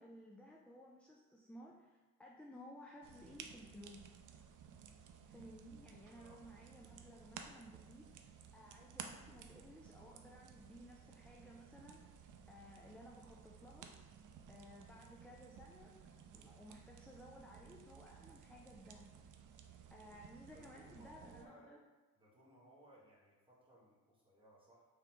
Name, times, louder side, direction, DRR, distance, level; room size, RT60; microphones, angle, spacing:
voice 1, 0.0-4.1 5.3-8.1 8.5-12.0 12.5-13.9 14.5-15.9 16.3-19.1 19.9-21.8, equal, 5° left, -2 dB, 0.3 m, -57 dB
sound 1, 3.0-21.5, right 7 dB, 65° right, 0.4 m, -57 dB
voice 2, 6.1-6.4 20.0-21.7 22.1-24.9, right 1 dB, 15° right, -7 dB, 1.4 m, -64 dB
3.7 x 3.5 x 3.0 m, 1.2 s
cardioid pair, 85°, 33 cm